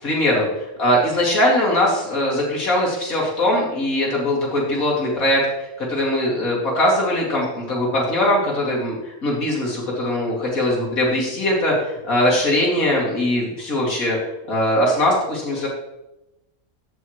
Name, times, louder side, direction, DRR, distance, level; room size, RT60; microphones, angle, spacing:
voice 1, 0.0-0.5 0.8-14.2 14.5-15.7, left 1 dB, 75° left, -4 dB, 3.0 m, -21 dB
14.5 x 6.3 x 3.1 m, 0.94 s
omnidirectional pair, 1.5 m